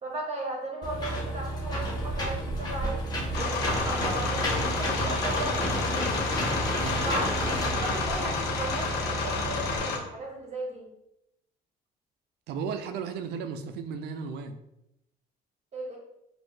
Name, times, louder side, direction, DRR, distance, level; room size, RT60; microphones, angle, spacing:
voice 1, 0.0-6.0 7.0-10.9 15.7-16.0, right 1 dB, 40° right, -1 dB, 1.5 m, -36 dB
Engine / Mechanisms, 0.8-9.8, equal, 25° left, 1.4 m, -31 dB
sound 1, 3.3-10.0, left 4 dB, 80° left, 1.0 m, -30 dB
voice 2, 12.5-14.6, right 6 dB, 80° right, 9 dB, 0.5 m, -35 dB
5.0 x 2.7 x 3.8 m, 0.83 s
cardioid pair, 110°, 17 cm